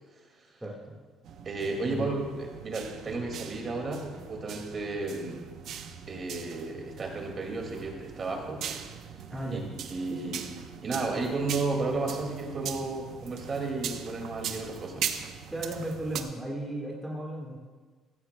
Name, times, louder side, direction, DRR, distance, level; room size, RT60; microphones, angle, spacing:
voice 1, 0.6-0.9 1.8-2.1 9.3-9.6 10.1-10.2 15.5-17.6, right 1 dB, 10° right, -3 dB, 1.7 m, -35 dB
sound 1, 1.2-16.2, right 8 dB, 60° right, 0.8 m, -40 dB
voice 2, 1.4-5.4 6.1-8.6 8.9-9.0 9.5-9.6 9.9-10.4 10.8-15.1, right 3 dB, 35° right, 2 dB, 2.1 m, -33 dB
15.5 x 15.0 x 2.2 m, 1.4 s
cardioid pair, 135°, 0 cm